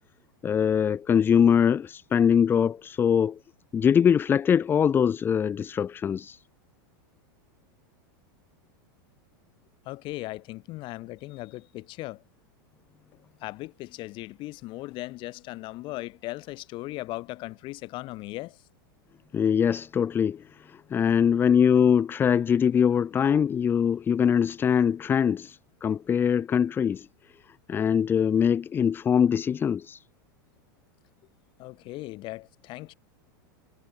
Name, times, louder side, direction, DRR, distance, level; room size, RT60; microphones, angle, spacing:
voice 1, 0.4-3.4 3.7-6.4 19.3-27.1 27.7-30.0, left 8 dB, 20° left, 0.4 m, -23 dB
voice 2, 9.9-12.2 13.4-18.6 31.6-32.9, left 19 dB, 45° left, 3.9 m, -38 dB
supercardioid pair, 130°, 12 cm